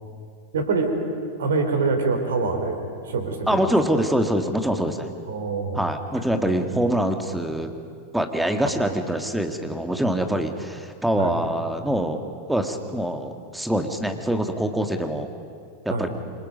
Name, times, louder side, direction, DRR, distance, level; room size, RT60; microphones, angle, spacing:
voice 1, 0.5-0.9 1.4-3.7 5.3-5.8 6.2-6.6 8.6-8.9 11.2-11.4 15.9-16.1, right 4 dB, 65° right, 6 dB, 3.6 m, -25 dB
voice 2, 3.5-5.1 5.7-7.7 8.1-12.2 12.5-15.3 15.9-16.1, equal, 5° right, 6 dB, 1.9 m, -24 dB
28.0 x 25.5 x 5.4 m, 2.2 s
figure-of-eight pair, 90°, 0 cm